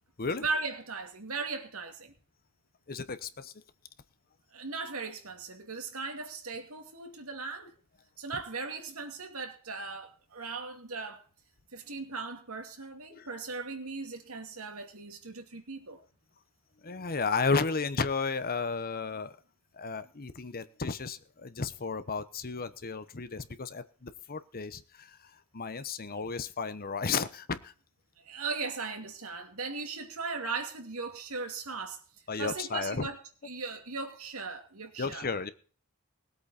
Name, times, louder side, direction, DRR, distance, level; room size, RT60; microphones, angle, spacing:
voice 1, 0.4-2.1 4.5-7.7 8.2-11.2 11.7-16.0 28.2-32.0 32.4-33.2 33.4-35.3, right 4 dB, 70° right, 2.7 m, -38 dB
voice 2, 2.9-3.5 13.1-13.3 16.8-19.4 19.7-27.7 32.3-33.1 35.0-35.5, left 4 dB, 45° left, 1.0 m, -33 dB
20.0 x 8.4 x 4.3 m
head